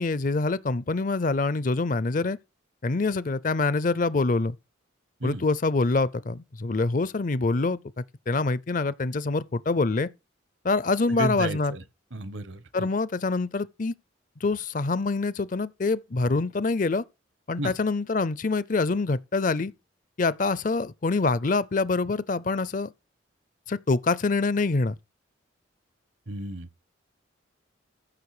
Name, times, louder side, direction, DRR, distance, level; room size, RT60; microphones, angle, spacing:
voice 1, 0.0-2.4 2.8-4.6 5.2-10.1 10.6-11.8 12.7-13.9 14.4-17.0 17.5-19.7 20.2-22.9 23.7-24.9, left 3 dB, 40° left, 0.5 m, -25 dB
voice 2, 11.1-11.8 12.1-12.9 17.6-17.7 26.3-26.7, right 2 dB, 65° right, 1.1 m, -32 dB
14.5 x 6.4 x 4.9 m
head